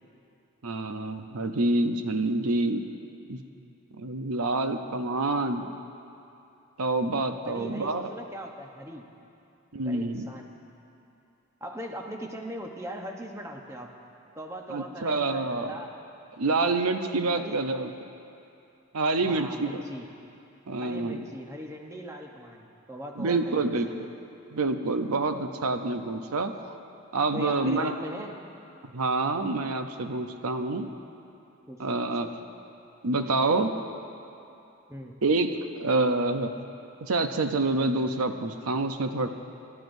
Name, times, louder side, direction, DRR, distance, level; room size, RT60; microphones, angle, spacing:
voice 1, 0.6-2.8 3.3-3.4 4.0-5.7 6.8-8.1 9.7-10.3 14.7-15.7 16.4-17.9 18.9-19.8 20.7-21.2 23.2-23.9 24.5-26.7 27.1-27.9 28.9-30.9 31.8-32.3 33.0-33.7 35.2-36.5 37.0-39.3, right 2 dB, 80° right, 7 dB, 0.7 m, -27 dB
voice 2, 7.5-9.0 9.8-10.5 11.6-13.9 14.4-15.9 17.4-17.6 19.2-20.1 20.8-23.7 27.3-28.3 31.7-32.3 34.9-35.2, equal, 15° right, 1 dB, 0.9 m, -40 dB
28.5 x 13.0 x 2.7 m, 2.7 s
head